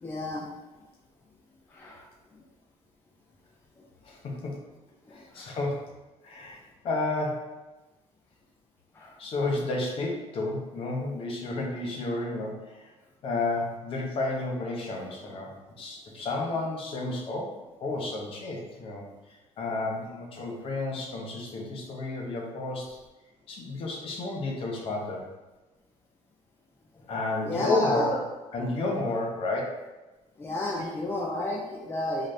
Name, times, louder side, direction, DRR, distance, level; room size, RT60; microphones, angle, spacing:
voice 1, 0.0-0.5 1.7-2.0 5.1-5.6 8.9-9.2 15.2-15.4 27.4-28.1 30.4-32.3, left 1 dB, 15° left, -2 dB, 0.4 m, -32 dB
voice 2, 4.0-4.6 5.1-5.9 6.2-7.6 9.2-12.8 13.2-15.5 15.8-17.5 17.8-19.0 19.6-23.0 23.5-25.3 27.1-28.2 28.5-29.8 30.8-30.9, left 2 dB, 45° left, 0 dB, 0.8 m, -31 dB
3.9 x 2.6 x 3.2 m, 1.1 s
cardioid pair, 150°, 13 cm